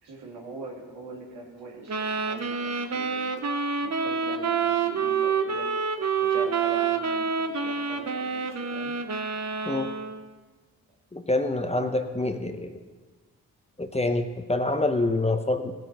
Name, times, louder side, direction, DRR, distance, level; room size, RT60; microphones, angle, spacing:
voice 1, 0.0-3.2 3.8-5.7 6.2-8.9 11.7-12.4, right 2 dB, 80° right, -2 dB, 2.4 m, -42 dB
sound 1, 1.9-10.3, right 5 dB, 40° right, 1.0 m, -27 dB
voice 2, 11.1-12.7 13.8-15.7, left 2 dB, 15° left, 7 dB, 0.9 m, -26 dB
16.5 x 6.2 x 4.7 m, 1.3 s
hypercardioid pair, 45°, 41 cm